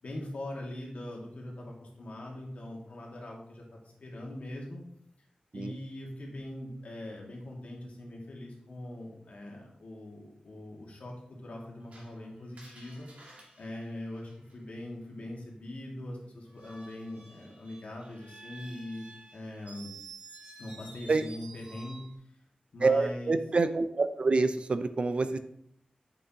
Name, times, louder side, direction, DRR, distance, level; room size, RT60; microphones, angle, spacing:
voice 1, 0.0-4.9 5.5-19.9 20.6-22.0 22.7-23.4, left 1 dB, 60° left, -1 dB, 1.9 m, -42 dB
Screech, 11.9-14.8 16.4-22.2, right 3 dB, 65° right, 2.0 m, -51 dB
voice 2, 22.8-25.4, right 3 dB, 50° right, 10 dB, 0.5 m, -27 dB
8.1 x 6.1 x 2.9 m, 0.71 s
wide cardioid pair, 120°, 3 cm